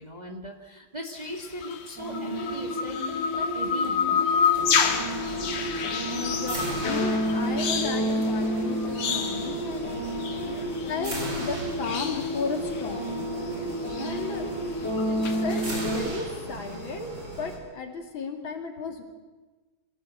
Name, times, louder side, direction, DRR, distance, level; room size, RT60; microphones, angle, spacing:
voice 1, 0.0-3.0 3.4-4.3 9.3-9.6 13.5-13.8, right 1 dB, 20° right, 2 dB, 1.6 m, -39 dB
sound 1, 1.2-11.6 11.8-13.2 13.5-15.8, left 6 dB, 85° left, 2.4 m, -30 dB
sound 2, 2.0-16.0, equal, 5° left, 7.2 m, -31 dB
sound 3, 4.5-17.6, right 3 dB, 60° right, 5.1 m, -38 dB
voice 2, 6.1-10.0 10.4-13.2 13.9-14.5 15.0-15.2 15.4-19.0, left 5 dB, 65° left, 4 dB, 3.2 m, -34 dB
24.0 x 15.5 x 7.9 m, 1.2 s
omnidirectional pair, 2.3 m